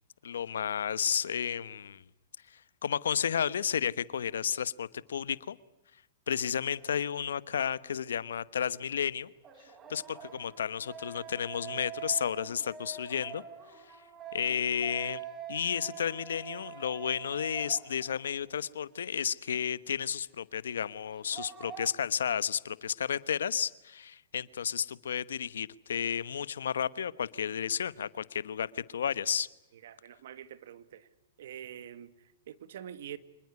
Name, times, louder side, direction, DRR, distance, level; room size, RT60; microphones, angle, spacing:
voice 1, 0.2-2.0 2.5-5.6 6.3-9.3 9.9-13.4 14.3-29.5, left 8 dB, 85° left, 1.0 m, -32 dB
sound 1, 6.8-6.9 9.4-18.3 18.6-18.7 21.0-21.9, right 7 dB, 25° right, 3.7 m, -45 dB
voice 2, 29.7-31.1 31.4-33.2, right 10 dB, 70° right, 1.8 m, -46 dB
26.5 x 21.0 x 9.6 m
hypercardioid pair, 130°, 0 cm